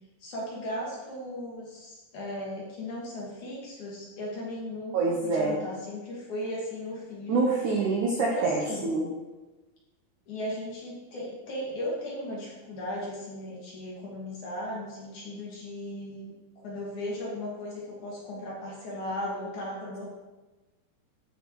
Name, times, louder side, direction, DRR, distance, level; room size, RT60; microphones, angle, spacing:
voice 1, 0.2-7.5 8.1-8.9 10.3-16.3 16.6-20.1, left 1 dB, 45° left, -5 dB, 3.3 m, -36 dB
voice 2, 4.9-5.6 7.3-9.1, right 3 dB, 75° right, -2 dB, 1.8 m, -26 dB
13.5 x 7.0 x 4.9 m, 1.2 s
omnidirectional pair, 5.4 m